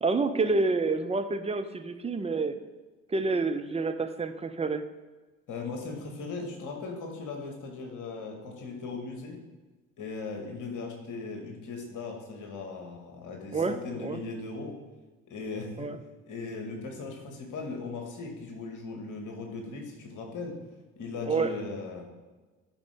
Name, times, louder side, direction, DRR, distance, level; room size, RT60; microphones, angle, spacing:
voice 1, 0.0-2.6 3.1-4.9 13.5-14.2 15.8-16.0 21.3-21.5, right 3 dB, 15° right, 8 dB, 0.6 m, -28 dB
voice 2, 5.5-9.4 10.0-14.7 15.3-15.9 16.3-20.5 21.0-22.0, left 3 dB, 50° left, 1 dB, 2.1 m, -38 dB
12.0 x 5.2 x 3.8 m, 1.2 s
figure-of-eight pair, 50°, 39 cm